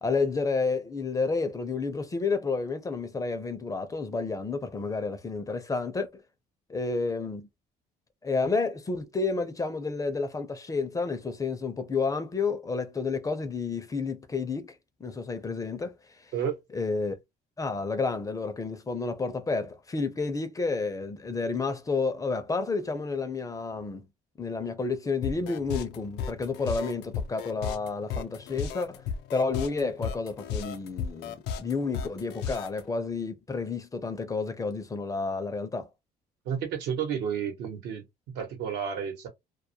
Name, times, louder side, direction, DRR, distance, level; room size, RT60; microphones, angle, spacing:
voice 1, 0.0-6.1 6.7-7.5 8.2-14.7 15.0-15.9 16.7-17.2 17.6-24.0 24.4-29.0 29.3-35.9, left 4 dB, 20° left, 0.4 m, -30 dB
sound 1, 25.2-32.8, left 7 dB, 85° left, 0.4 m, -34 dB
voice 2, 36.4-38.1 38.3-39.3, right 8 dB, 85° right, 0.9 m, -31 dB
2.3 x 2.1 x 2.7 m
cardioid pair, 110°, 17 cm